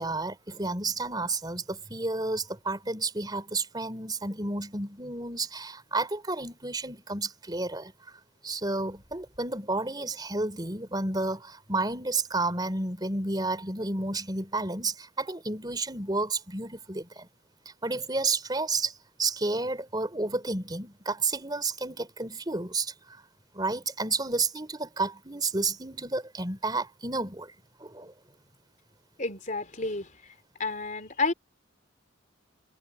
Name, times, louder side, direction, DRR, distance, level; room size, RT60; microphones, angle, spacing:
voice 1, 0.0-7.9 8.4-17.3 17.8-23.2 23.5-27.5 27.8-28.1, right 3 dB, 20° right, 3.7 m, -31 dB
voice 2, 29.2-30.3 30.6-31.3, left 3 dB, 40° left, 3.6 m, -31 dB
head